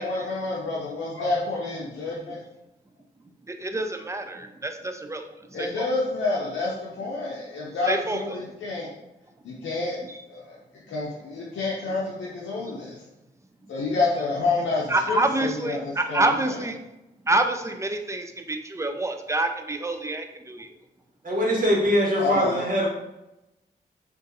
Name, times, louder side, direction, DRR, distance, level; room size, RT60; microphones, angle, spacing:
voice 1, 0.0-2.4 5.5-8.9 9.4-10.0 10.3-10.6 10.9-13.0 13.7-16.7 22.2-22.8, left 3 dB, 85° left, -5 dB, 0.6 m, -29 dB
voice 2, 3.5-5.2 5.6-5.9 7.9-8.4 14.9-16.7 17.3-20.7, right 2 dB, 15° right, 6 dB, 0.5 m, -27 dB
voice 3, 21.2-22.9, equal, 45° right, -3 dB, 1.3 m, -22 dB
3.7 x 2.6 x 2.7 m, 0.93 s
supercardioid pair, 40°, 19 cm